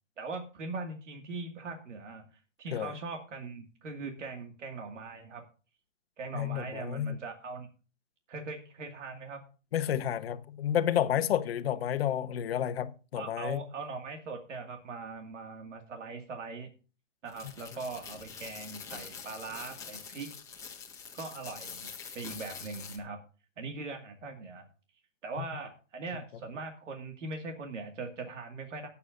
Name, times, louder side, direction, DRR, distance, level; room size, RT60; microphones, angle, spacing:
voice 1, 0.2-5.4 6.2-7.7 8.3-9.4 13.2-16.7 17.2-20.3 21.1-23.2 23.6-24.7 25.2-28.9, right 3 dB, 80° right, 2.3 m, -41 dB
voice 2, 6.3-7.1 9.7-13.6, left 10 dB, 55° left, 1.2 m, -30 dB
sound 1, 17.3-23.0, left 6 dB, 10° left, 1.6 m, -45 dB
18.0 x 8.3 x 2.6 m
hypercardioid pair, 155°, 37 cm